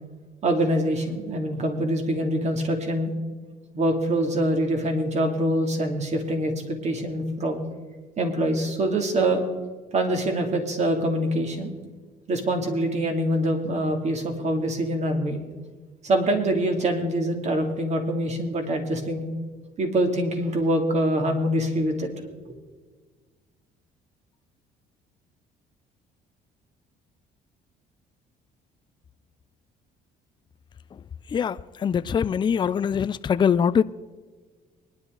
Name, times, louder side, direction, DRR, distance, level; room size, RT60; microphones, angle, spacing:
voice 1, 0.4-3.1 3.7-6.5 6.8-7.6 8.2-9.4 9.9-11.7 12.3-15.4 16.0-19.2 19.8-22.1 22.5-22.6, right 1 dB, 40° right, 2.8 m, -24 dB
voice 2, 31.3-33.8, left 7 dB, 25° left, 0.4 m, -23 dB
24.0 x 11.0 x 4.0 m
cardioid pair, 110°, 17 cm